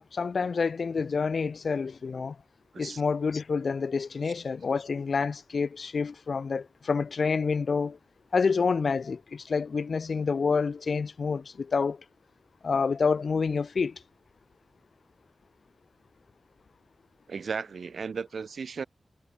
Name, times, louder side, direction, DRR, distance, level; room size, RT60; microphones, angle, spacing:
voice 1, 0.0-2.4 2.8-8.0 8.3-12.0 12.6-14.0, left 5 dB, 70° left, 1.2 m, -28 dB
voice 2, 17.3-18.8, right 5 dB, 75° right, 3.0 m, -35 dB
wide cardioid pair, 90°, 0 cm